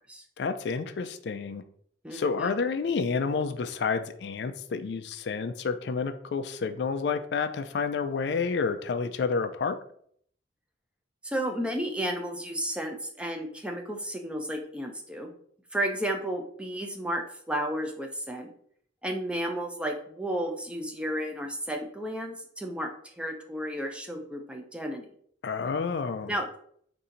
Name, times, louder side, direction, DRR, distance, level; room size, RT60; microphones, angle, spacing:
voice 1, 0.4-1.6 2.1-9.8 25.4-26.3, left 5 dB, 65° left, 9 dB, 0.3 m, -29 dB
voice 2, 2.0-2.5 11.2-15.3 15.7-18.5 19.0-25.1 26.3-26.6, right 1 dB, 5° right, 3 dB, 0.4 m, -33 dB
4.2 x 2.6 x 3.8 m, 0.62 s
head